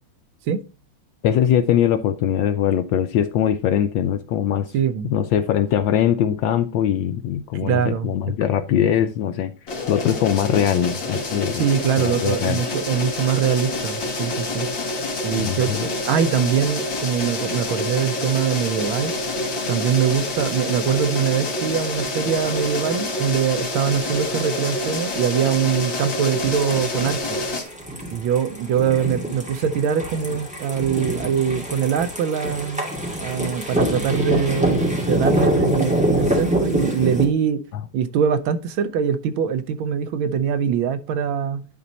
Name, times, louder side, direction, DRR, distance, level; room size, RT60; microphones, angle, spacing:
voice 1, 1.2-4.7 5.0-9.5 9.9-11.6 12.0-12.6 15.4-15.9, left 9 dB, 75° left, 1.1 m, -21 dB
voice 2, 4.7-5.1 7.6-8.1 11.5-14.7 15.2-19.1 19.7-27.4 28.1-32.9 33.2-37.6 37.9-41.7, right 8 dB, 75° right, 1.4 m, -23 dB
sound 1, 9.7-27.6, left 2 dB, 60° left, 2.6 m, -27 dB
sound 2, 26.4-37.2, equal, 5° right, 2.1 m, -24 dB
10.5 x 4.0 x 4.1 m
omnidirectional pair, 2.4 m